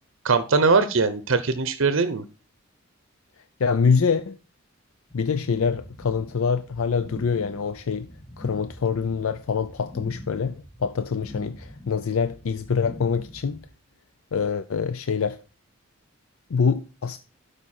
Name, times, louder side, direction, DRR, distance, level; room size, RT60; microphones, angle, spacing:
voice 1, 0.2-2.2, right 4 dB, 65° right, 0.7 m, -21 dB
voice 2, 3.6-4.4 5.1-8.1 8.4-13.6 14.3-15.4 16.5-17.2, left 5 dB, 80° left, 0.5 m, -25 dB
sound 1, 5.1-13.7, equal, 5° left, 1.0 m, -44 dB
12.0 x 5.1 x 4.2 m
head